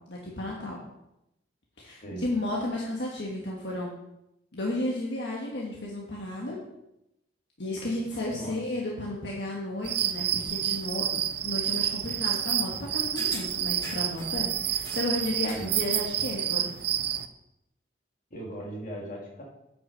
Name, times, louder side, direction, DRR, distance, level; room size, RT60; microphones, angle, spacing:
voice 1, 0.1-0.8 1.8-3.9 4.5-6.6 7.6-16.7, left 1 dB, 65° left, -3 dB, 1.6 m, -33 dB
sound 1, 9.8-17.3, right 11 dB, 60° right, 0.5 m, -29 dB
sound 2, 13.2-14.3 14.7-15.7 16.1-16.2, left 1 dB, 25° left, 3.2 m, -42 dB
voice 2, 18.3-19.4, right 1 dB, 45° left, -2 dB, 2.6 m, -38 dB
9.0 x 6.1 x 5.3 m, 0.85 s
head